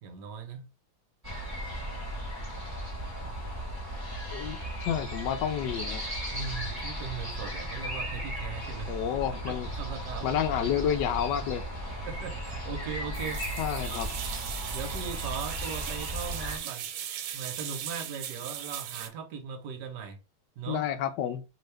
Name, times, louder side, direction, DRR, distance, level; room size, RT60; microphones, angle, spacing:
voice 1, 0.0-0.7 6.3-8.9 9.5-10.3 12.1-14.0 14.7-16.9 17.3-20.2 20.6-20.8, right 6 dB, 70° right, 1.2 m, -39 dB
sound 1, 1.2-16.6, equal, 15° right, 1.0 m, -36 dB
voice 2, 4.3-6.0 8.9-9.7 10.2-11.6 13.6-14.1 20.7-21.4, left 9 dB, 75° left, 1.1 m, -30 dB
sound 2, 13.1-15.6, equal, 10° left, 0.9 m, -51 dB
sound 3, 13.1-19.1, right 10 dB, 90° right, 1.4 m, -38 dB
3.0 x 2.8 x 3.3 m
omnidirectional pair, 2.2 m